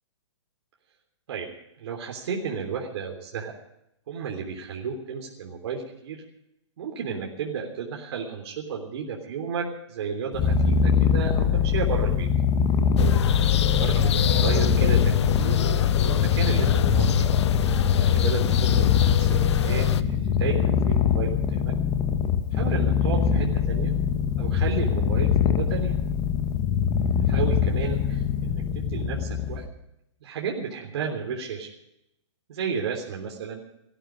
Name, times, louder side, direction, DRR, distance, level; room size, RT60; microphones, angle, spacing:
voice 1, 1.8-3.5 4.1-6.2 6.8-12.3 13.8-15.7 16.0-17.3 18.0-21.7 22.5-23.9 24.4-26.0 27.2-29.7 30.2-31.7 32.5-33.6, right 6 dB, 55° right, 0 dB, 3.5 m, -33 dB
Purr, 10.3-29.7, left 7 dB, 30° left, 1.8 m, -23 dB
sound 1, 13.0-20.0, left 9 dB, 60° left, 0.9 m, -24 dB
19.5 x 14.5 x 5.0 m, 0.81 s
hypercardioid pair, 135°, 16 cm